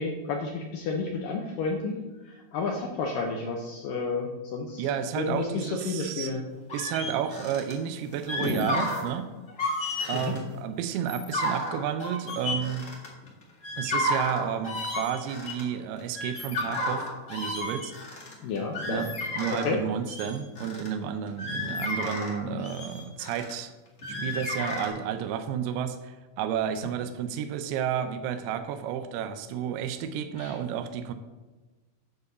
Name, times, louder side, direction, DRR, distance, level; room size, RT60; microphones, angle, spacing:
voice 1, 0.0-2.0 2.3-4.9 5.2-6.4 10.1-10.3 18.4-19.1 19.5-19.8 30.4-30.5, left 4 dB, 70° left, 0 dB, 2.2 m, -31 dB
voice 2, 4.8-6.3 6.7-9.3 10.1-12.8 13.8-17.9 18.9-23.7 24.1-31.1, right 8 dB, 80° right, 9 dB, 2.6 m, -31 dB
sound 1, 6.7-7.7 8.1-9.1 9.5-10.4 10.9-13.3 13.6-15.6 16.0-19.8 20.1-20.9 21.3-23.5 24.0-24.9, left 1 dB, 45° left, 1.0 m, -32 dB
9.6 x 4.8 x 6.7 m, 1.2 s
omnidirectional pair, 4.7 m